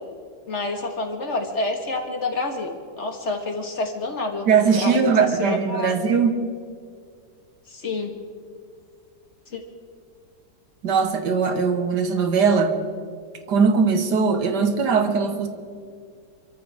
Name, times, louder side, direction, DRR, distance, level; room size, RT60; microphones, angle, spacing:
voice 1, 0.5-5.1 5.4-5.9 7.7-8.1 9.5-9.6, left 2 dB, 40° left, 3 dB, 2.0 m, -28 dB
voice 2, 4.5-6.4 10.8-12.7 13.5-15.5, right 5 dB, 70° right, 6 dB, 1.9 m, -20 dB
27.5 x 14.0 x 3.6 m, 2.2 s
omnidirectional pair, 1.9 m